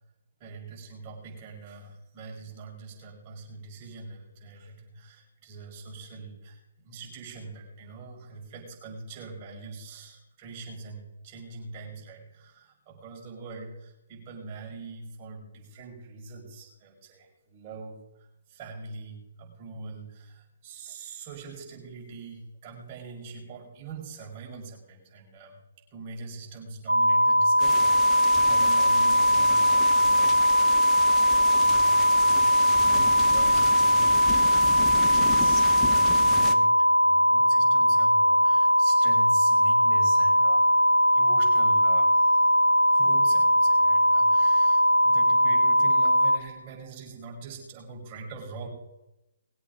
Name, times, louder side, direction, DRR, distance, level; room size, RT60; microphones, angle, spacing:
voice 1, 0.4-18.0 18.5-25.6 25.9-40.6 41.1-42.4 42.9-48.7, right 4 dB, 35° right, -1 dB, 5.6 m, -43 dB
sound 1, 26.9-46.4, equal, 90° right, 1.0 m, -20 dB
sound 2, 27.6-36.5, left 6 dB, 15° left, 1.2 m, -36 dB
21.0 x 8.2 x 5.3 m, 0.92 s
figure-of-eight pair, 135°, 0 cm